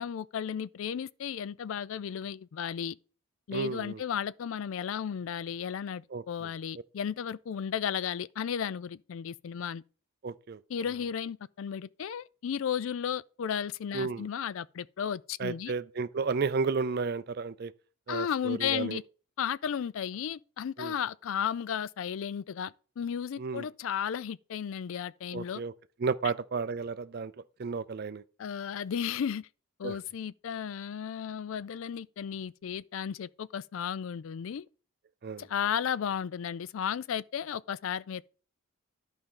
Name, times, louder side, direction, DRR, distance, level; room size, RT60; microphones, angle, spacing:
voice 1, 0.0-3.0 3.5-9.8 10.7-15.7 18.1-19.0 19.4-25.6 28.4-29.5 29.8-34.7 35.4-38.3, left 8 dB, 65° left, 0.3 m, -34 dB
voice 2, 3.5-4.0 6.1-6.5 10.2-10.6 13.9-14.3 15.4-17.7 18.1-19.0 20.8-20.9 23.4-23.7 25.3-25.7 26.0-28.2 29.8-30.0 35.2-35.4, right 4 dB, 45° right, 0.4 m, -33 dB
11.5 x 5.0 x 3.8 m
head